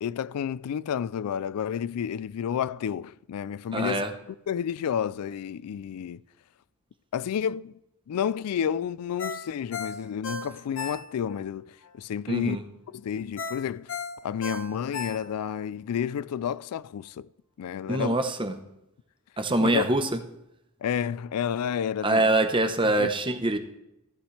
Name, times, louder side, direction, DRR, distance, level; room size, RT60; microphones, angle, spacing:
voice 1, 0.0-4.0 4.5-6.2 7.1-7.8 8.1-12.6 12.9-13.9 14.2-17.3 17.6-18.2 19.6-19.9 20.8-22.3 22.8-23.1, left 8 dB, 90° left, 0.3 m, -30 dB
voice 2, 3.7-4.1 12.3-12.6 17.9-18.6 19.4-20.1 22.0-23.6, right 2 dB, 20° right, 0.9 m, -24 dB
Ringtone, 9.2-11.4 11.8-11.9 13.4-15.6 16.0-16.1, left 4 dB, 60° left, 1.1 m, -35 dB
14.5 x 11.5 x 3.2 m
head